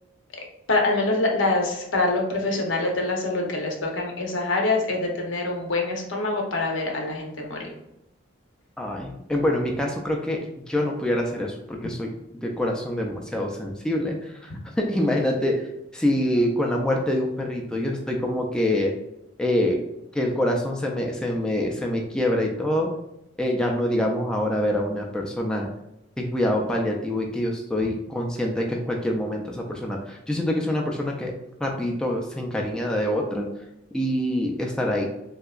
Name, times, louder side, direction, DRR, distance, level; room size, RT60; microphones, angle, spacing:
voice 1, 0.7-7.7, left 2 dB, 80° left, 1 dB, 0.7 m, -25 dB
voice 2, 8.8-10.4 10.7-14.5 14.8-15.6 15.9-18.9 19.4-19.8 20.1-22.9 23.4-25.7 26.2-31.3 31.6-33.5 33.9-35.1, left 1 dB, 5° left, -1 dB, 0.3 m, -25 dB
3.3 x 2.8 x 2.3 m, 0.88 s
head